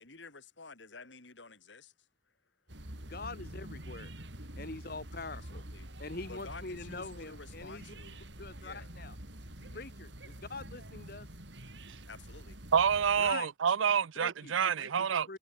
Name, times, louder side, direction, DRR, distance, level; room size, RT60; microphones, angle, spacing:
voice 1, 0.0-1.9 4.2-4.4 5.5-5.9 6.3-8.2 8.6-8.9 9.6-9.9 12.1-12.6, left 3 dB, 70° left, 3.6 m, -51 dB
sound 1, 2.7-13.3, right 1 dB, 70° right, 5.8 m, -47 dB
voice 2, 3.0-4.1 4.6-5.6 6.0-7.8 8.4-9.2 9.7-11.3 13.2-13.5 14.2-15.4, left 3 dB, 50° left, 1.4 m, -44 dB
voice 3, 12.7-15.4, right 7 dB, 90° right, 0.5 m, -28 dB
head